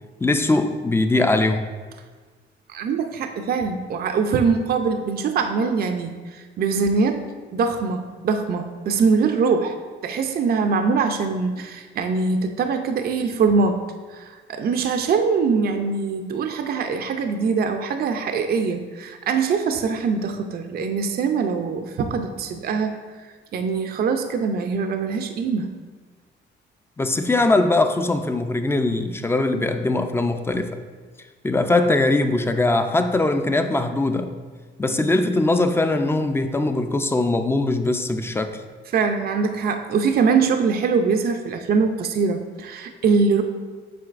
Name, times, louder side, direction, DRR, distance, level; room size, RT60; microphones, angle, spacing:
voice 1, 0.2-1.6 27.0-30.8 31.4-34.3 34.8-38.6, left 2 dB, 10° left, 7 dB, 0.4 m, -21 dB
voice 2, 2.7-7.3 7.5-9.8 10.0-13.8 14.1-23.0 23.5-25.7 38.9-43.4, right 5 dB, 50° right, 6 dB, 0.5 m, -23 dB
7.7 x 5.0 x 2.5 m, 1.4 s
cardioid pair, 90°, 20 cm